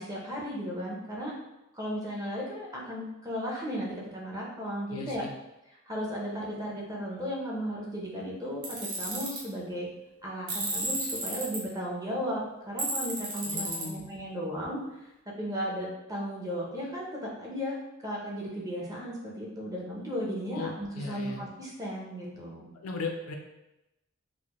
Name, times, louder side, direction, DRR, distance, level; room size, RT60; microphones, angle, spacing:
voice 1, 0.0-1.3 1.7-5.2 5.9-9.9 10.2-12.4 12.7-14.8 15.4-22.7, equal, 15° right, -4 dB, 0.7 m, -35 dB
voice 2, 4.9-5.3 13.5-14.0 20.5-21.4 22.7-23.4, left 3 dB, 80° left, 2 dB, 0.5 m, -37 dB
Tools, 8.6-9.4 10.5-11.6 12.8-13.8, right 2 dB, 60° right, 1.0 m, -32 dB
4.1 x 2.1 x 3.0 m, 0.93 s
head